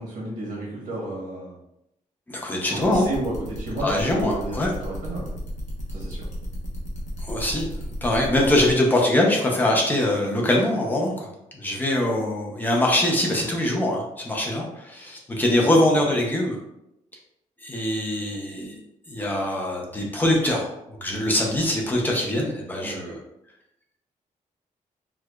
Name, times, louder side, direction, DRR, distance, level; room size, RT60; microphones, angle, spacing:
voice 1, 0.0-1.6 2.7-5.3 5.9-6.2 15.6-15.7 22.8-23.1, right 2 dB, 80° right, -4 dB, 1.1 m, -32 dB
voice 2, 2.3-3.1 3.8-4.7 7.2-7.7 8.0-11.3 11.5-16.6 17.6-18.8 19.1-23.2, left 1 dB, 15° left, -1 dB, 0.6 m, -23 dB
sound 1, 2.8-8.7, equal, 65° left, 0.9 m, -35 dB
4.6 x 2.3 x 2.3 m, 0.83 s
wide cardioid pair, 175°, 14 cm